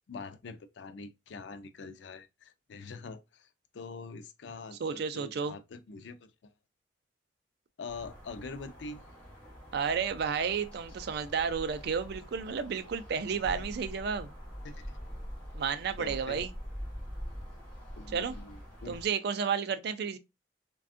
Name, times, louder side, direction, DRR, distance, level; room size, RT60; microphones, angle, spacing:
voice 1, 0.1-3.5 3.7-6.5 7.8-9.0 13.2-13.7 14.6-15.0 16.0-16.4 18.0-19.0, left 4 dB, 75° left, 0.4 m, -44 dB
voice 2, 4.7-5.6 9.7-14.3 15.5-16.5 18.1-18.3 18.9-20.2, right 6 dB, 60° right, 0.4 m, -32 dB
sound 1, 7.9-19.1, equal, 5° left, 1.4 m, -44 dB
3.4 x 2.2 x 2.4 m
head